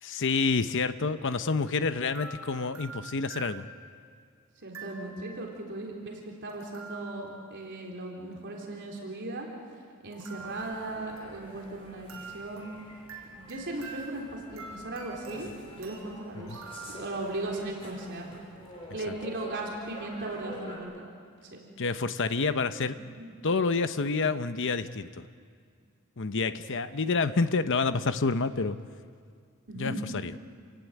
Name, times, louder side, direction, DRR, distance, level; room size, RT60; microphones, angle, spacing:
voice 1, 0.0-3.7 16.4-16.6 19.1-19.2 21.8-22.9 23.4-25.3 26.2-28.8 29.8-30.3, left 4 dB, 60° left, 10 dB, 0.9 m, -28 dB
sound 1, 1.3-1.5 2.1-4.1 4.7-5.4 6.5-7.5 10.1-11.7 12.1-17.0, right 4 dB, 75° right, 6.2 m, -46 dB
voice 2, 4.6-9.5 10.0-12.7 13.3-18.3 18.9-21.1 21.5-21.6 23.2-23.3 29.7-30.0, right 2 dB, 55° right, -1 dB, 3.8 m, -37 dB
sound 2, 10.4-20.8, equal, 25° left, 6.6 m, -48 dB
28.5 x 17.5 x 9.4 m, 2.1 s
head